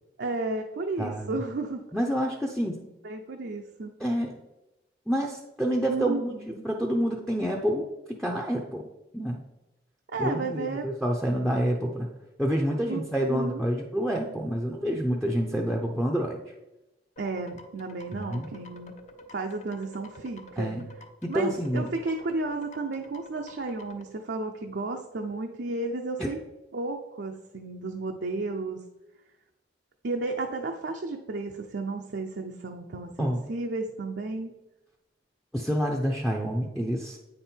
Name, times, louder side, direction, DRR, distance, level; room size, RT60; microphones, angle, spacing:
voice 1, 0.2-1.8 3.0-3.9 5.9-6.5 10.1-10.9 12.9-13.6 17.2-18.9 19.3-20.7 21.3-26.4 26.7-28.8 30.0-34.5, right 3 dB, 75° right, 3 dB, 0.6 m, -33 dB
voice 2, 1.0-1.4 1.9-2.9 4.0-4.4 5.1-8.9 9.1-9.4 10.2-12.1 12.4-16.5 18.1-18.5 20.6-20.8 21.2-21.9 26.2-26.3 33.2-33.4 35.5-37.2, equal, ahead, 1 dB, 0.6 m, -28 dB
sound 1, 17.2-24.0, left 1 dB, 40° left, 0.7 m, -49 dB
8.6 x 5.4 x 4.4 m, 1.0 s
head